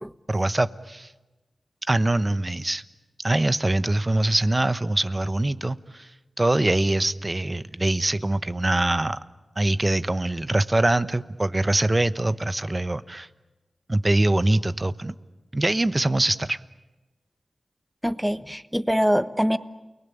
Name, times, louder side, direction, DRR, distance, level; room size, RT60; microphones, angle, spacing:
voice 1, 0.3-1.1 1.9-2.8 3.2-6.1 6.4-9.2 9.6-13.3 13.9-15.1 15.5-16.6, right 2 dB, 30° right, 15 dB, 1.0 m, -23 dB
voice 2, 18.0-19.6, equal, 5° right, 13 dB, 1.2 m, -23 dB
29.5 x 19.5 x 9.9 m, 1.1 s
cardioid pair, 55°, 0 cm